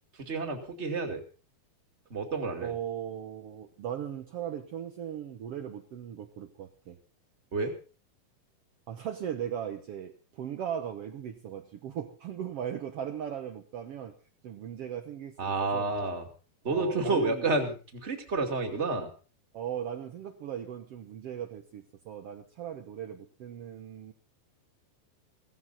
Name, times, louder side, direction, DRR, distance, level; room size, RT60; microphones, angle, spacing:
voice 1, 0.2-1.2 2.1-2.7 7.5-7.7 15.4-16.3 16.6-19.1, right 3 dB, 20° right, 4 dB, 2.1 m, -30 dB
voice 2, 2.6-7.0 8.9-14.1 14.4-15.9 16.6-17.5 19.5-24.1, right 9 dB, 70° right, 5 dB, 1.5 m, -38 dB
17.0 x 16.0 x 4.2 m, 0.36 s
omnidirectional pair, 4.3 m